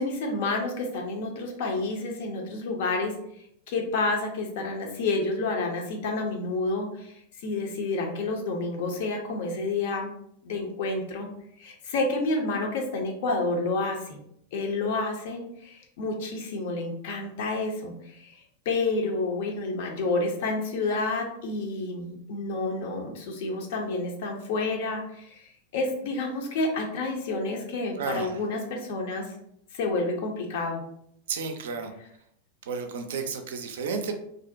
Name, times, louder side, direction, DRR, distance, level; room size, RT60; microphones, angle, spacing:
voice 1, 0.0-3.1 3.7-10.1 10.4-11.3 11.6-14.2 14.5-18.4 18.7-29.4 29.7-30.8, left 3 dB, 50° left, 2 dB, 0.5 m, -29 dB
voice 2, 28.0-28.4 31.3-31.9 32.7-34.2, right 5 dB, 60° right, 6 dB, 0.3 m, -32 dB
2.5 x 2.1 x 2.5 m, 0.72 s
figure-of-eight pair, 90°, 0 cm